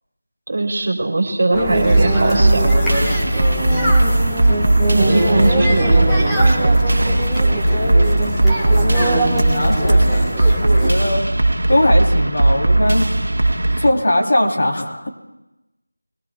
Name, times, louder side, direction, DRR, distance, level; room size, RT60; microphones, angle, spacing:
voice 1, 0.5-2.7 4.9-7.4, right 2 dB, 45° right, 1 dB, 3.3 m, -21 dB
sound 1, 1.5-10.9, right 1 dB, ahead, 1.4 m, -21 dB
sound 2, 1.9-13.9, right 2 dB, 75° right, 1.4 m, -17 dB
voice 2, 3.6-4.0 4.5-4.7 9.1-11.2 11.7-13.0 13.8-15.1, left 1 dB, 45° left, 0 dB, 3.1 m, -20 dB
21.5 x 19.0 x 2.3 m, 0.97 s
figure-of-eight pair, 175°, 0 cm